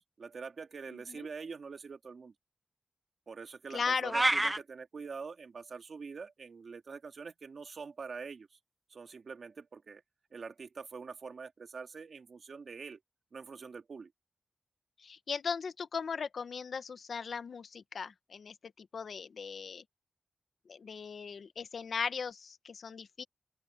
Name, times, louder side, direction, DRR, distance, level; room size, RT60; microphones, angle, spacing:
voice 1, 0.0-2.3 3.3-8.5 8.9-10.0 10.3-13.0 13.3-14.1, right 5 dB, 75° right, 2.1 m, -45 dB
voice 2, 0.9-1.3 3.7-4.1 15.0-19.8 20.7-23.2, left 5 dB, 90° left, 0.9 m, -38 dB
sound 1, 4.1-4.6, right 1 dB, 20° right, 1.0 m, -27 dB
open air
wide cardioid pair, 95°, 0 cm